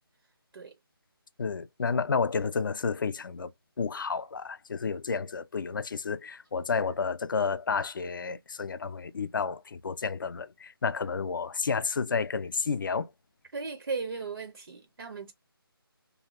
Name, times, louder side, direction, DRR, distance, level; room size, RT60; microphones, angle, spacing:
voice 1, 1.4-3.5 3.8-13.1, left 5 dB, 55° left, 0.4 m, -31 dB
voice 2, 13.5-15.3, right 4 dB, 65° right, 0.6 m, -36 dB
2.6 x 2.3 x 2.9 m
figure-of-eight pair, 160°, 13 cm